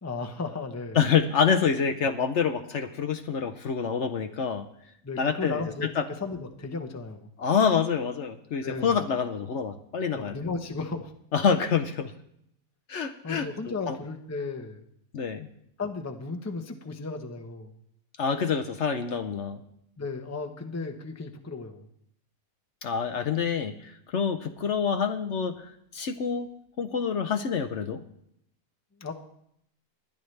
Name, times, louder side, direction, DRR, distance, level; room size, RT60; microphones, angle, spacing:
voice 1, 0.0-1.0 5.0-7.3 8.6-9.0 10.1-11.1 13.2-14.8 15.8-17.7 20.0-21.9 29.0-29.1, left 4 dB, 15° left, 5 dB, 0.7 m, -35 dB
voice 2, 0.9-4.6 5.2-6.0 7.4-10.3 11.3-12.1 12.9-13.5 13.9-14.0 15.1-15.5 18.2-19.6 22.8-26.5 26.8-28.0, left 6 dB, 60° left, 8 dB, 1.0 m, -27 dB
20.5 x 11.0 x 3.3 m, 0.74 s
omnidirectional pair, 1.5 m